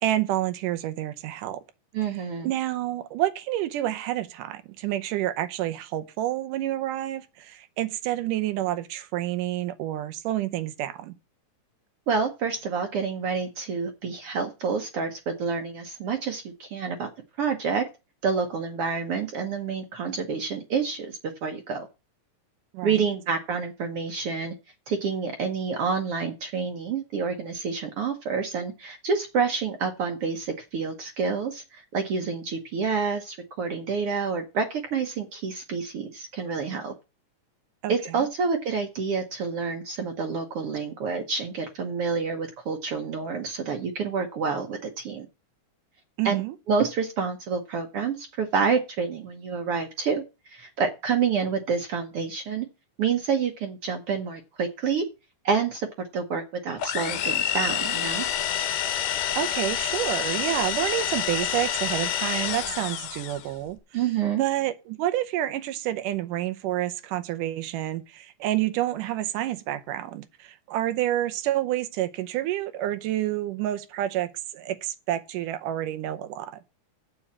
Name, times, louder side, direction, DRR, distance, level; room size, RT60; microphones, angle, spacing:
voice 1, 0.0-1.6 2.4-11.2 22.7-23.0 37.8-38.2 46.2-46.5 59.4-63.8 64.4-76.6, right 13 dB, 90° right, 2.5 m, -29 dB
voice 2, 1.9-2.5 12.1-17.1 17.4-17.8 18.2-21.9 22.8-24.5 24.9-36.9 37.9-45.3 46.2-46.4 46.7-52.7 53.0-55.0 55.4-55.9 56.1-58.2 63.9-64.4, right 5 dB, 60° right, 1.6 m, -28 dB
sound 1, 56.8-63.5, left 10 dB, 80° left, 2.5 m, -28 dB
7.7 x 7.1 x 7.2 m
omnidirectional pair, 3.6 m